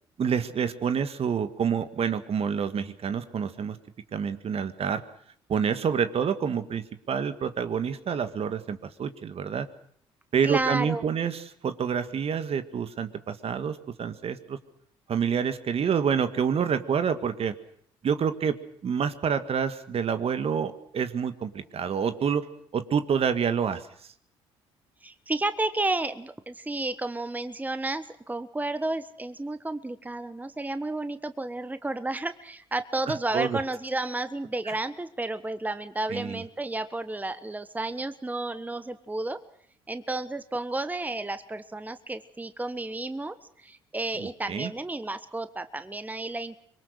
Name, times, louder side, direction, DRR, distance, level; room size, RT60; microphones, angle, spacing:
voice 1, 0.2-3.8 4.1-5.0 5.5-9.7 10.3-14.6 15.1-17.6 18.0-18.6 18.8-22.5 22.7-23.9 33.1-33.6 36.1-36.4 44.2-44.7, right 7 dB, 50° right, 10 dB, 1.8 m, -28 dB
voice 2, 10.4-11.0 25.0-39.4 39.9-46.6, right 2 dB, 15° right, 12 dB, 1.3 m, -32 dB
25.0 x 22.5 x 6.6 m, 0.63 s
hypercardioid pair, 55°, 13 cm